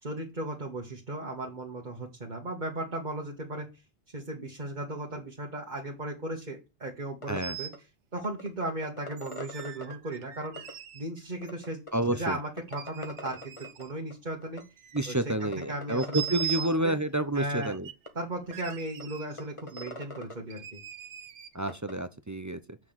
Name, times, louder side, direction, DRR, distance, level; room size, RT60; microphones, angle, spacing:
voice 1, 0.0-3.7 4.1-7.7 8.1-10.6 10.9-11.8 12.1-14.6 15.1-16.2 16.6-16.9 17.3-17.7 18.2-20.8, right 1 dB, 40° right, 1.9 m, -36 dB
sound 1, 7.2-7.4 7.7-7.8 8.2-9.9 10.6-10.7 11.4-11.9 12.3-12.4 12.6-13.8 14.1-14.2 14.4-14.6 15.0-15.1 15.3-16.6 17.4-17.5 18.1-18.2 18.5-18.6 19.0-19.1 19.4-20.3 21.7-21.9, left 1 dB, 25° left, 1.6 m, -41 dB
sound 2, 7.4-7.8 9.2-11.0 11.5-11.6 12.6-13.9 14.5-15.4 15.9-16.8 17.6-18.1 18.5-19.4 19.7-19.9 20.5-21.5, right 10 dB, 80° right, 1.1 m, -40 dB
voice 2, 11.9-12.4 14.9-17.9 21.5-22.8, right 1 dB, 20° right, 0.5 m, -29 dB
7.4 x 6.3 x 7.4 m
omnidirectional pair, 1.2 m